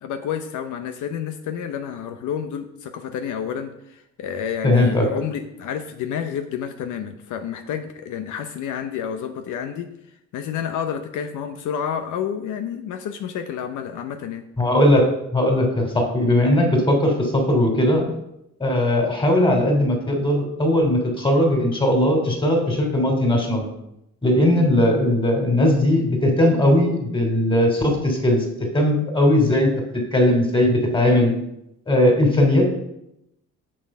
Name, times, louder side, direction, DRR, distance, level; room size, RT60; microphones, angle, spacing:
voice 1, 0.0-9.9 10.3-14.5 24.4-24.7 32.4-32.6, left 8 dB, 80° left, 7 dB, 0.8 m, -29 dB
voice 2, 4.6-5.1 14.6-15.1 15.3-18.0 18.6-23.7 24.2-28.4 28.7-29.7 30.1-31.3 31.9-32.7, left 1 dB, 15° left, 2 dB, 2.8 m, -18 dB
7.6 x 6.5 x 5.4 m, 0.82 s
cardioid pair, 90°, 30 cm